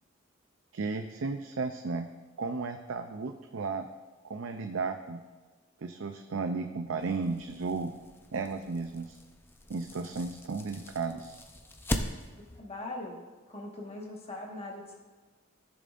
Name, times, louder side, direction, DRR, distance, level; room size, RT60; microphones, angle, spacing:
voice 1, 0.7-2.1 2.4-3.9 4.2-5.2 5.8-7.9 8.3-9.2 9.7-11.4, right 4 dB, 70° right, 6 dB, 0.5 m, -34 dB
sound 1, 7.0-12.6, left 1 dB, 10° left, 0.6 m, -40 dB
voice 2, 12.5-13.2 13.5-15.0, left 2 dB, 30° left, -1 dB, 1.5 m, -40 dB
16.0 x 6.9 x 2.5 m, 1.3 s
head